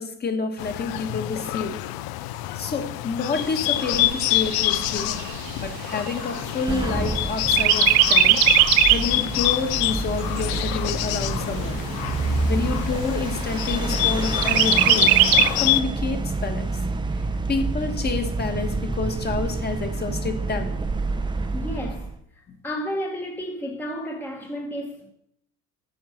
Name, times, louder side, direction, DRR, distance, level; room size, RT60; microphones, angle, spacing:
voice 1, 0.0-1.8 2.5-5.1 5.6-8.4 8.9-11.8 12.5-15.1 15.4-16.7 17.5-20.7, left 4 dB, 25° left, 1.3 m, -29 dB
Bird, 0.6-15.8, left 17 dB, 75° left, 0.6 m, -26 dB
Chirp tweet, 3.4-7.1 7.5-9.2 9.6-9.7 10.1-11.1 11.6-11.7 12.1-12.2 12.6-13.2 14.4-15.5, right 17 dB, 70° right, 0.5 m, -20 dB
sound 1, 6.7-22.2, right 3 dB, 15° right, 0.6 m, -28 dB
voice 2, 21.5-22.1 22.6-25.1, equal, 5° left, 1.0 m, -32 dB
9.4 x 7.5 x 5.7 m
cardioid pair, 140°, 37 cm